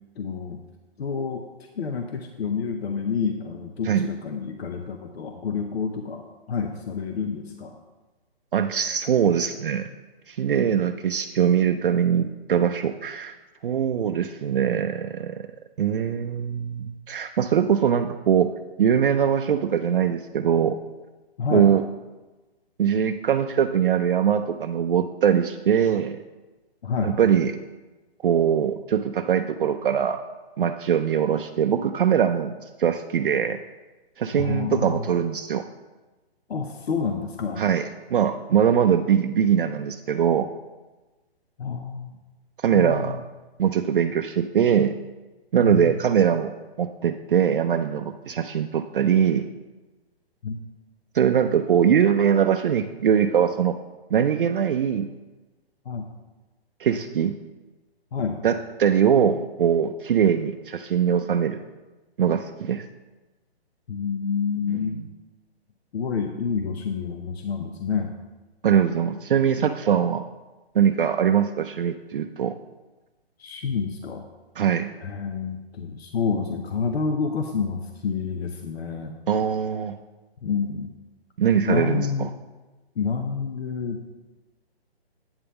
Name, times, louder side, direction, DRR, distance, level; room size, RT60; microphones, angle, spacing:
voice 1, 0.2-0.6 1.0-1.5 1.8-7.8 21.4-21.7 26.8-27.2 34.4-35.1 36.5-37.6 41.6-42.1 42.7-43.2 45.6-45.9 50.4-50.6 55.9-56.1 58.1-58.4 63.9-65.0 65.9-68.1 73.4-74.2 75.0-79.1 80.4-80.9 81.7-82.3 83.0-84.0, left 5 dB, 75° left, 5 dB, 0.8 m, -28 dB
voice 2, 8.5-9.9 10.3-13.3 13.6-15.4 15.8-18.5 18.8-20.8 21.5-21.8 22.8-26.2 27.0-27.5 28.2-30.2 30.6-33.6 34.2-35.6 37.6-40.5 42.6-43.2 43.6-44.9 45.5-46.5 46.8-49.5 51.1-53.8 54.1-55.1 56.8-57.4 58.4-61.6 62.2-62.9 64.8-65.1 68.6-70.2 70.7-72.5 74.6-74.9 79.3-79.9 81.4-82.3, right 8 dB, 55° right, 7 dB, 0.5 m, -22 dB
8.8 x 3.6 x 6.8 m, 1.2 s
hypercardioid pair, 160°, 31 cm